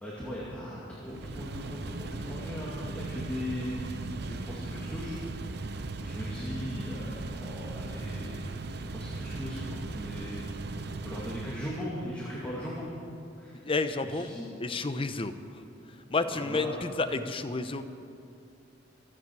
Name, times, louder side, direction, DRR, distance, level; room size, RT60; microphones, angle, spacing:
voice 1, 0.0-3.8 4.2-5.7 6.0-8.4 8.9-10.5 11.0-12.9 13.4-13.6 14.0-14.5 16.2-16.8, equal, 10° left, -7 dB, 2.4 m, -38 dB
sound 1, 1.0-11.9, right 3 dB, 60° right, 0.7 m, -38 dB
voice 2, 13.6-14.3 14.6-15.3 16.1-17.9, left 3 dB, 30° left, 9 dB, 0.7 m, -30 dB
26.5 x 10.0 x 4.8 m, 2.5 s
head